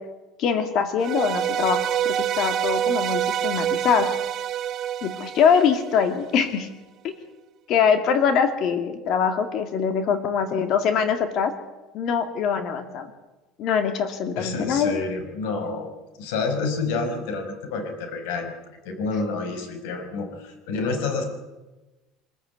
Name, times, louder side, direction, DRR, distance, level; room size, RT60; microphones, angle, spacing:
voice 1, 0.4-4.1 5.0-6.7 7.0-7.1 7.7-11.5 11.9-13.1 13.6-15.0, left 6 dB, 50° left, 8 dB, 2.3 m, -23 dB
sound 1, 1.0-6.2, right 10 dB, 40° right, 1.1 m, -26 dB
voice 2, 14.4-15.9 16.2-18.6 18.8-21.2, left 4 dB, 85° left, 7 dB, 5.4 m, -28 dB
25.0 x 15.0 x 9.5 m, 1.1 s
cardioid pair, 150°, 0 cm